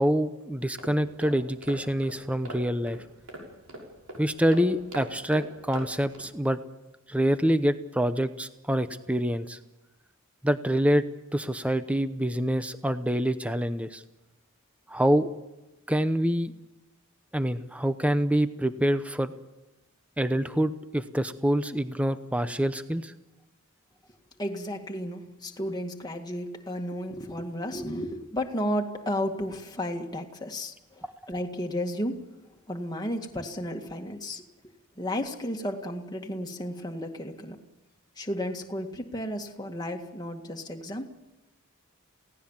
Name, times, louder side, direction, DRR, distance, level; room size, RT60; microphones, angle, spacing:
voice 1, 0.0-3.0 4.2-6.6 7.1-9.6 10.4-11.0 11.3-14.0 14.9-15.3 15.9-16.5 17.3-19.3 20.2-23.1, equal, 5° right, 11 dB, 0.8 m, -26 dB
sound 1, 0.6-6.3, right 1 dB, 80° right, 6.3 m, -43 dB
voice 2, 24.4-32.2 32.7-34.4 35.0-37.6 38.2-41.1, equal, 20° left, 3 dB, 1.9 m, -33 dB
28.5 x 17.5 x 7.4 m, 1.0 s
head